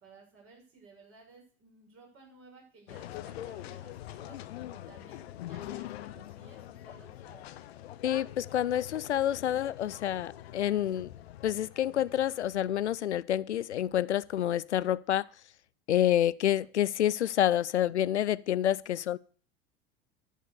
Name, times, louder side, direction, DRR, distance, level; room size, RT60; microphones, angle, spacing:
voice 1, 0.0-4.4 4.7-7.4, right 4 dB, 40° right, 6.5 m, -57 dB
sound 1, 2.9-13.0, left 13 dB, 65° left, 0.8 m, -44 dB
voice 2, 8.0-11.1 11.4-15.3 15.9-19.2, left 11 dB, 80° left, 0.5 m, -28 dB
11.0 x 7.5 x 6.6 m
figure-of-eight pair, 75°, 34 cm